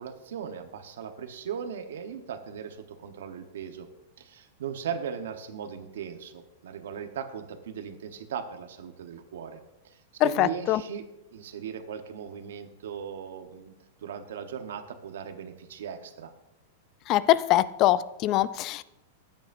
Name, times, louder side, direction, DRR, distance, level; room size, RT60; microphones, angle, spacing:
voice 1, 0.0-3.9 4.2-13.7 14.0-16.3, right 7 dB, 85° right, 7 dB, 1.0 m, -38 dB
voice 2, 10.2-10.8 17.1-18.8, left 14 dB, 35° left, 17 dB, 0.4 m, -23 dB
14.0 x 9.1 x 2.6 m, 0.93 s
supercardioid pair, 145°, 0 cm